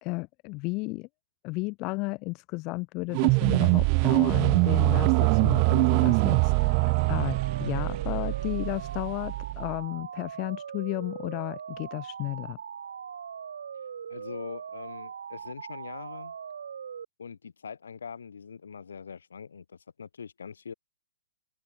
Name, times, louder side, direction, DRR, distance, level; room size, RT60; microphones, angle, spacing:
voice 1, 0.0-1.1 1.4-12.6, left 26 dB, 25° left, 0.9 m, -33 dB
sound 1, 3.1-9.8, right 40 dB or more, 25° right, 0.9 m, -24 dB
sound 2, 5.1-17.0, right 7 dB, 75° right, 4.6 m, -40 dB
voice 2, 14.1-16.3 17.2-20.7, left 6 dB, 90° left, 5.0 m, -42 dB
open air
hypercardioid pair, 160°, 0 cm